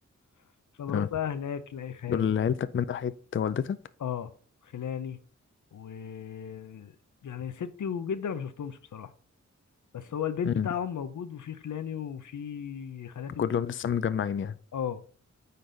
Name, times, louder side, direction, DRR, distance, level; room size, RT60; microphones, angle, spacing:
voice 1, 0.8-2.3 4.0-4.3 4.6-5.2 5.7-7.0 7.2-9.1 9.9-13.5 14.7-15.0, left 8 dB, 90° left, 0.7 m, -35 dB
voice 2, 2.1-3.8 10.4-10.7 13.4-14.6, left 8 dB, 45° left, 0.4 m, -28 dB
9.4 x 3.9 x 3.9 m
wide cardioid pair, 80°, 29 cm